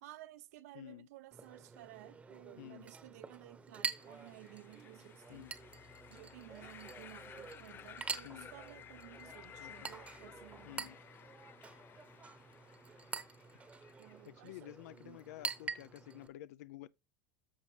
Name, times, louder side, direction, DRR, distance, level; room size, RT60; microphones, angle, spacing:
voice 1, 0.0-5.5 6.1-10.9 14.0-15.2, right 16 dB, 80° right, 0.9 m, -55 dB
voice 2, 0.7-1.1 2.6-2.9 5.3-5.5 8.2-8.5 9.6-9.9 10.7-11.0 14.3-16.9, left 15 dB, 80° left, 0.5 m, -51 dB
Chink clink, 1.3-16.3, right 5 dB, 15° right, 0.9 m, -47 dB
sound 1, 4.0-14.3, left 9 dB, 25° left, 0.4 m, -56 dB
Musical instrument, 5.3-11.0, left 6 dB, 45° left, 1.3 m, -65 dB
13.5 x 5.2 x 3.3 m
supercardioid pair, 135°, 8 cm